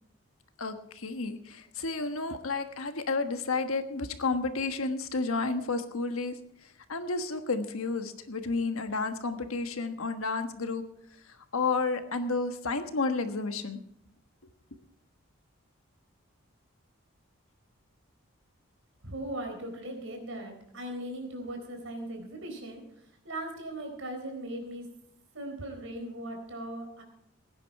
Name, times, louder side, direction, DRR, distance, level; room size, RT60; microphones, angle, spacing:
voice 1, 0.6-6.3 6.9-10.8 11.5-13.8, left 3 dB, 85° left, 8 dB, 1.3 m, -31 dB
voice 2, 19.0-22.8 23.2-24.9 25.3-27.0, right 1 dB, 70° right, 3 dB, 4.1 m, -38 dB
17.5 x 9.8 x 4.7 m, 0.74 s
head